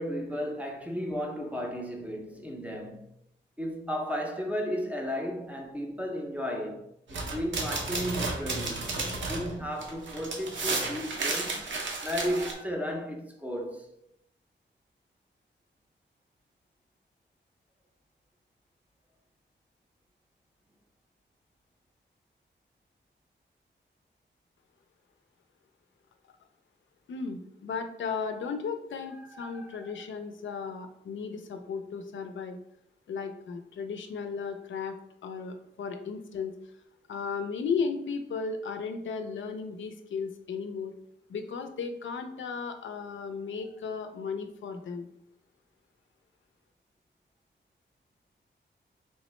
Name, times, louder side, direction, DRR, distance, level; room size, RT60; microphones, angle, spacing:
voice 1, 0.0-3.1 3.6-13.9 29.3-30.0, equal, 5° right, 0.5 m, -34 dB
sound 1, 7.1-12.5, right 3 dB, 75° right, 0.7 m, -33 dB
voice 2, 27.1-32.6 33.1-35.0 35.2-36.5 37.1-40.9 41.3-45.1, left 5 dB, 80° left, 0.4 m, -35 dB
3.4 x 3.1 x 3.0 m
wide cardioid pair, 170°, 19 cm